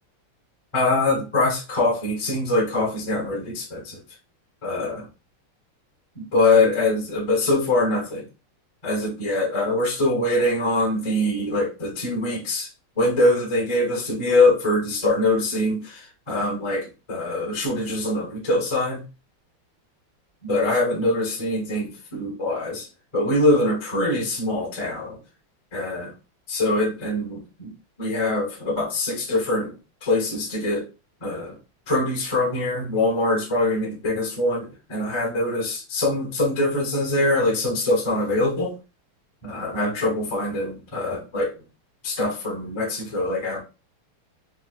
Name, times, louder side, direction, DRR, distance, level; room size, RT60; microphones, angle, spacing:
voice 1, 0.7-4.0 4.6-5.1 6.1-8.3 8.8-12.7 13.0-19.0 20.4-22.9 23.1-25.2 25.7-26.1 26.5-27.7 28.0-29.7 30.0-30.9 31.2-31.6 31.9-38.8 39.4-41.5 42.0-43.6, left 2 dB, 30° left, -2 dB, 0.5 m, -23 dB
4.3 x 2.1 x 2.4 m, 0.30 s
omnidirectional pair, 2.4 m